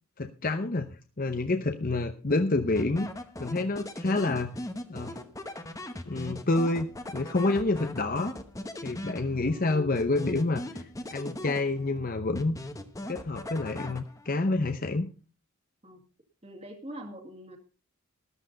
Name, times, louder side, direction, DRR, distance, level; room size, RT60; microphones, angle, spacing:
voice 1, 0.2-0.9 1.2-3.1 3.4-4.5 4.9-5.2 6.1-8.3 8.8-12.6 13.1-15.1, left 2 dB, 40° left, 8 dB, 0.8 m, -28 dB
sound 1, 2.8-9.6 9.9-12.0 12.4-14.4, left 1 dB, 15° left, 1.0 m, -39 dB
voice 2, 16.4-17.6, equal, 25° right, 4 dB, 2.0 m, -44 dB
13.5 x 12.5 x 3.9 m, 0.34 s
head